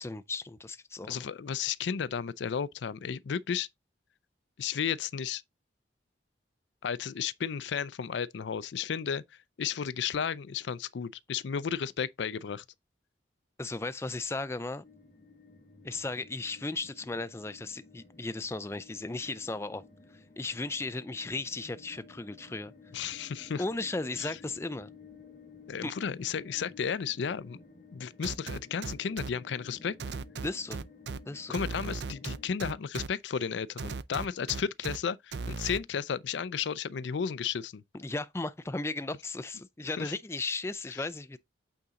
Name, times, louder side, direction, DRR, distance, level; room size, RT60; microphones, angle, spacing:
voice 1, 0.0-1.3 13.6-14.8 15.8-19.8 20.1-22.7 23.6-24.9 25.8-25.9 30.4-30.8 31.3-31.5 37.9-41.4, left 3 dB, 15° left, 0.4 m, -36 dB
voice 2, 1.1-3.7 4.6-5.4 6.8-9.2 9.6-12.6 22.9-23.6 24.2-24.4 25.7-27.6 27.9-30.0 31.5-37.8 40.0-40.1, left 7 dB, 75° left, 0.4 m, -33 dB
sound 1, 14.8-32.5, left 4 dB, 40° left, 1.3 m, -54 dB
sound 2, 28.2-29.3 30.0-31.2 31.5-33.1 33.8-35.0 35.3-35.8, right 4 dB, 65° right, 0.5 m, -36 dB
8.6 x 4.0 x 3.6 m
head